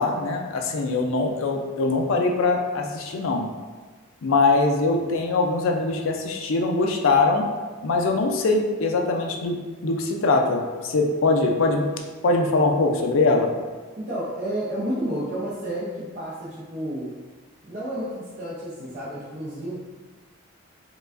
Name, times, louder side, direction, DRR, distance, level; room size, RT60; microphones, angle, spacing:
voice 1, 0.0-3.5 4.2-7.5 7.8-9.6 9.8-11.9 12.2-13.5, left 3 dB, 70° left, 2 dB, 0.4 m, -22 dB
voice 2, 14.0-17.1 17.6-19.7, right 1 dB, 40° right, -10 dB, 0.7 m, -31 dB
4.6 x 2.3 x 2.5 m, 1.4 s
head